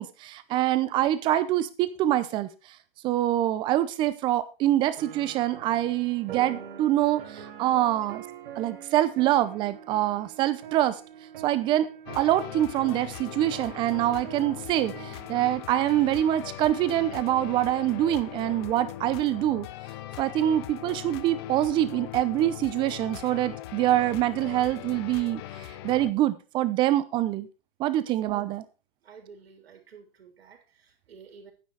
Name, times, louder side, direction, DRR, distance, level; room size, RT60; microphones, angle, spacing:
voice 1, 0.0-2.5 3.0-8.2 8.6-11.0 11.4-11.9 12.1-19.7 20.2-27.5 27.8-28.6, right 13 dB, 15° right, 14 dB, 0.6 m, -25 dB
sound 1, 5.0-15.5, right 8 dB, 55° right, 2.7 m, -44 dB
sound 2, 12.1-26.1, left 14 dB, 25° left, 0.6 m, -40 dB
voice 2, 29.0-31.5, right 5 dB, 80° right, 5 dB, 3.5 m, -51 dB
9.7 x 9.4 x 4.7 m, 0.32 s
hypercardioid pair, 155°, 30 cm